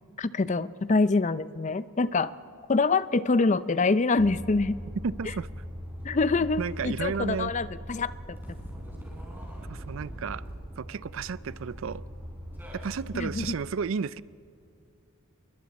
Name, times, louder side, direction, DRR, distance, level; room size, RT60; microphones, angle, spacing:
voice 1, 0.2-2.3 2.7-4.8 6.0-8.4 13.1-13.5, left 3 dB, 35° left, 15 dB, 0.5 m, -25 dB
sound 1, 4.2-13.5, equal, 10° right, 4.3 m, -40 dB
voice 2, 5.0-5.5 6.6-7.5 9.7-10.4 10.8-12.0 12.7-14.2, right 6 dB, 70° right, 19 dB, 0.4 m, -32 dB
28.5 x 22.0 x 4.2 m, 2.6 s
head